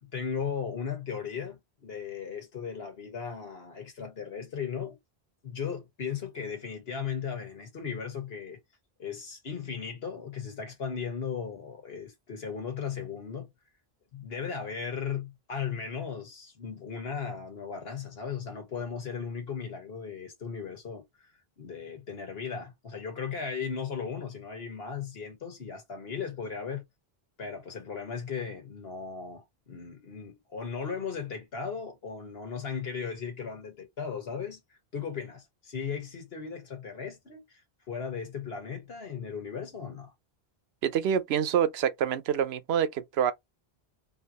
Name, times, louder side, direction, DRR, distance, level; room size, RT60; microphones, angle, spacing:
voice 1, 0.1-5.0 5.4-8.6 9.0-13.5 14.1-21.3 21.6-26.8 27.4-34.6 34.9-37.6 37.9-40.1, left 6 dB, 75° left, 1.6 m, -36 dB
voice 2, 40.8-43.3, right 9 dB, 85° right, 0.8 m, -26 dB
3.4 x 2.9 x 2.8 m
omnidirectional pair, 1.0 m